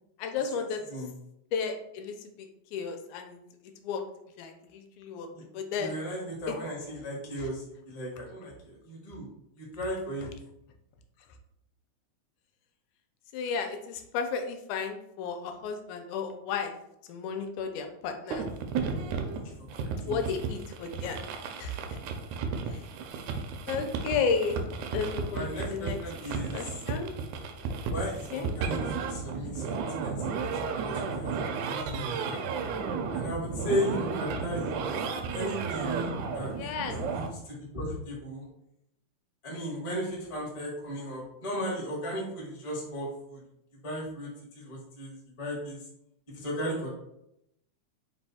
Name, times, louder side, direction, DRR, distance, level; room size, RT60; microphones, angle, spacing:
voice 1, 0.2-0.8 1.5-2.1 2.7-3.4 3.8-4.0 4.4-5.3 5.5-5.9 6.5-6.6 7.4-7.5 13.3-16.7 17.1-18.5 20.0-21.2 21.6-22.0 22.7-22.8 23.7-24.6 24.9-26.0 26.5-27.1 28.3-28.5 36.5-37.0, left 5 dB, 80° left, 5 dB, 1.9 m, -33 dB
voice 2, 0.8-1.1 5.3-5.4 5.8-9.3 9.6-10.3 19.3-20.2 25.3-26.7 27.9-30.2 30.5-31.4 31.7-32.4 33.1-34.9 35.3-36.5 36.9-38.4 39.4-43.4 43.8-44.3 44.5-45.8 46.3-46.9, equal, 40° left, -5 dB, 0.4 m, -36 dB
sound 1, 18.3-37.3, right 5 dB, 80° right, 1.9 m, -33 dB
4.8 x 2.2 x 4.1 m, 0.80 s
omnidirectional pair, 3.4 m